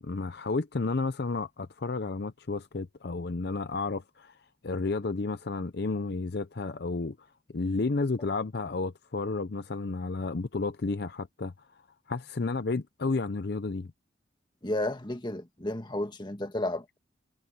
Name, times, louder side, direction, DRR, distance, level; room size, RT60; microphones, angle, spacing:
voice 1, 0.0-4.4 4.6-7.3 7.5-11.8 12.1-13.9, left 3 dB, 55° left, 0.6 m, -32 dB
voice 2, 14.6-17.0, left 1 dB, 25° left, 1.6 m, -32 dB
head